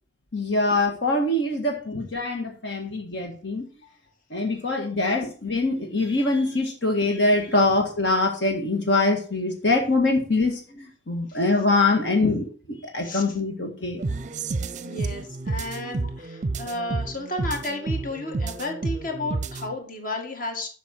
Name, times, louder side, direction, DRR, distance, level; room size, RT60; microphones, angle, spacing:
voice 1, 0.3-3.6 4.3-12.4 12.9-14.0, left 2 dB, 65° left, 2 dB, 1.8 m, -23 dB
voice 2, 13.0-13.4 14.1-14.2 14.8-20.7, left 2 dB, 45° left, 3 dB, 2.0 m, -32 dB
sound 1, 14.0-19.8, right 3 dB, 40° right, 0.6 m, -30 dB
11.5 x 6.3 x 4.5 m, 0.40 s
head